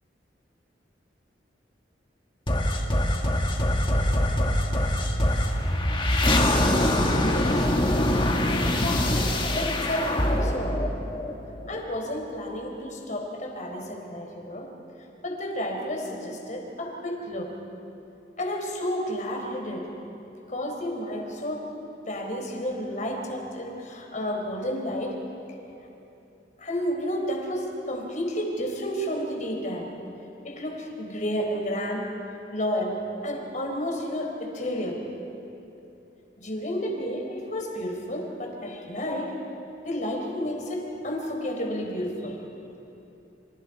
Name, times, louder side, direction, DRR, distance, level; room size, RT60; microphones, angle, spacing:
sound 1, 2.5-11.8, left 1 dB, 30° left, 1.9 m, -24 dB
voice 1, 7.2-7.7 8.3-10.8 11.7-14.7 15.2-17.5 18.4-19.9 20.5-21.6 22.1-25.2 26.6-29.9 30.4-32.1 32.5-33.0 33.2-35.0 36.4-39.3 39.8-42.4, equal, 45° left, 1 dB, 4.0 m, -31 dB
28.0 x 27.5 x 4.9 m, 2.9 s
head